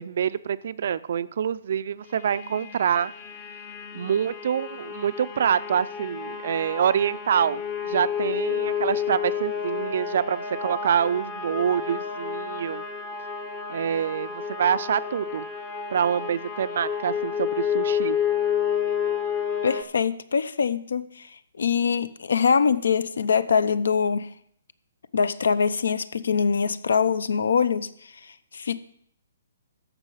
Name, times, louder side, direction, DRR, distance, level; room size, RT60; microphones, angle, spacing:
voice 1, 0.0-3.1 3.9-12.8 13.7-15.5 15.9-18.2, right 8 dB, 45° right, 16 dB, 0.4 m, -26 dB
sound 1, 2.2-19.8, left 8 dB, 15° left, 0.6 m, -30 dB
voice 2, 19.6-21.3 21.6-24.3 25.1-28.1 28.5-28.8, left 6 dB, 75° left, 16 dB, 0.6 m, -23 dB
13.5 x 5.5 x 5.6 m, 0.67 s
hypercardioid pair, 175°, 0 cm